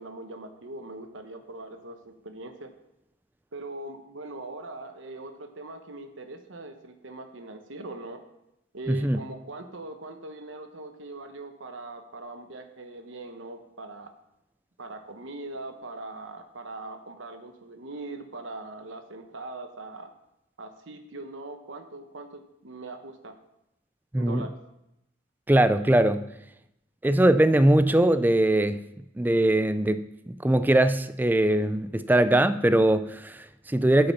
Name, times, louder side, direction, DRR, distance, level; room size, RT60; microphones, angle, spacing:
voice 1, 0.0-2.7 3.5-8.2 8.7-14.1 14.8-20.1 20.6-23.3 24.2-24.5, right 2 dB, 85° right, 7 dB, 1.1 m, -41 dB
voice 2, 8.9-9.2 24.1-24.4 25.5-26.2 27.0-28.8 29.2-30.0 30.4-34.1, right 1 dB, 10° right, 12 dB, 0.3 m, -21 dB
8.6 x 7.7 x 5.7 m, 0.87 s
head